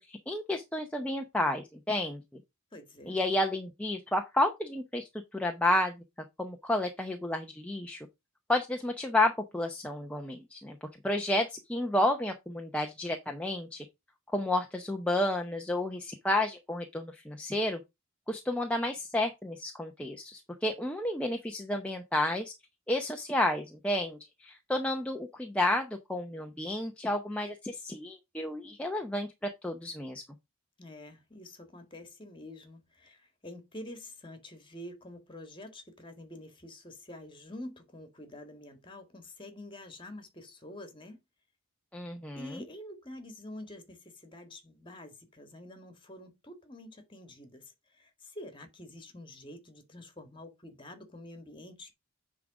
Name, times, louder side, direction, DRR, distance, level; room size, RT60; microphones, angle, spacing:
voice 1, 0.1-2.2 3.1-5.0 5.3-6.0 6.4-8.1 8.5-10.8 11.0-13.8 14.3-17.8 18.3-22.5 22.9-30.2 41.9-42.5, left 1 dB, 5° left, 0.7 m, -31 dB
voice 2, 2.7-3.2 30.8-41.2 42.3-51.9, left 1 dB, 25° left, 1.8 m, -47 dB
9.6 x 3.8 x 4.8 m
head